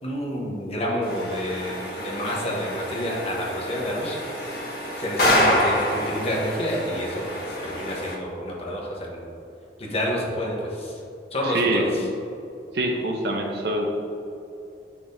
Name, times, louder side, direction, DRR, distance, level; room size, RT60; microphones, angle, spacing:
voice 1, 0.0-4.2 5.0-9.3 9.8-10.9 11.3-12.0, equal, 35° left, -2 dB, 1.2 m, -29 dB
sound 1, 1.0-8.1, left 1 dB, 60° left, 1.5 m, -27 dB
voice 2, 11.4-11.9 12.7-13.9, right 1 dB, 60° right, 1 dB, 0.9 m, -25 dB
8.5 x 5.9 x 2.8 m, 2.7 s
head